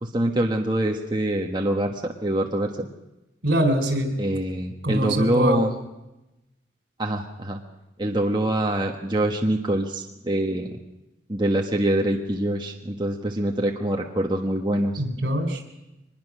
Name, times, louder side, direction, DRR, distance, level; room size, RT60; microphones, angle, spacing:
voice 1, 0.0-2.9 4.2-5.7 7.0-7.6 8.0-10.8 11.3-15.0, right 1 dB, 25° right, 2 dB, 1.2 m, -25 dB
voice 2, 3.4-4.2 4.8-5.6 15.0-15.6, equal, 70° right, 6 dB, 3.9 m, -23 dB
24.0 x 20.5 x 6.2 m, 0.96 s
head